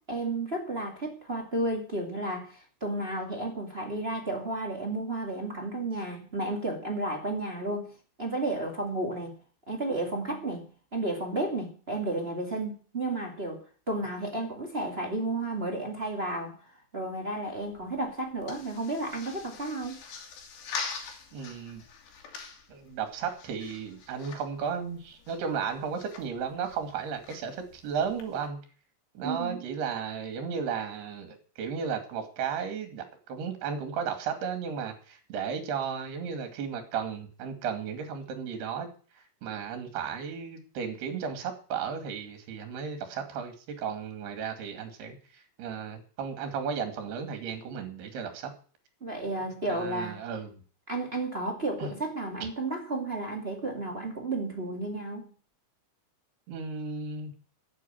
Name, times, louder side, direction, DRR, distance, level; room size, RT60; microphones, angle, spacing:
voice 1, 0.0-7.9 8.2-9.3 9.7-10.7 10.9-16.6 16.9-20.0 29.2-29.6 49.0-50.2 50.9-55.3, right 2 dB, 20° right, 1.6 m, -32 dB
sound 1, 17.6-28.5, left 5 dB, 75° left, 4.3 m, -44 dB
voice 2, 21.3-21.8 22.7-28.6 29.1-38.9 39.1-48.5 49.4-50.6 51.8-51.9 52.4-52.5 56.5-57.3, right 6 dB, 70° right, 4.2 m, -34 dB
11.0 x 8.7 x 8.8 m
omnidirectional pair, 4.9 m